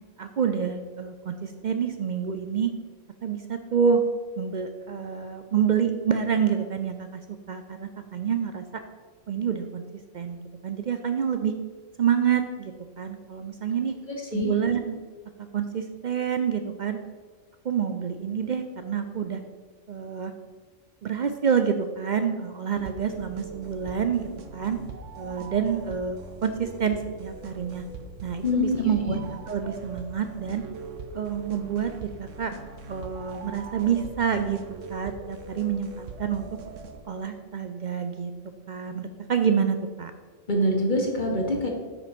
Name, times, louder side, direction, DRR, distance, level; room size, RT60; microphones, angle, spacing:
voice 1, 0.2-2.7 3.2-4.0 4.4-7.2 7.5-8.6 9.3-9.8 10.1-11.5 12.0-13.9 14.3-15.0 15.5-17.0 17.6-19.4 19.9-20.3 21.0-24.8 25.2-27.8 28.2-29.2 29.5-30.6 31.1-32.5 32.9-34.6 34.9-36.5 37.0-38.3 38.7-40.1, right 7 dB, 60° right, 7 dB, 0.5 m, -27 dB
voice 2, 14.1-14.5 28.4-29.1 40.5-41.7, left 1 dB, 40° left, 1 dB, 1.1 m, -25 dB
sound 1, 22.7-37.0, right 3 dB, 80° right, 1.1 m, -41 dB
8.4 x 5.1 x 5.2 m, 1.5 s
omnidirectional pair, 1.3 m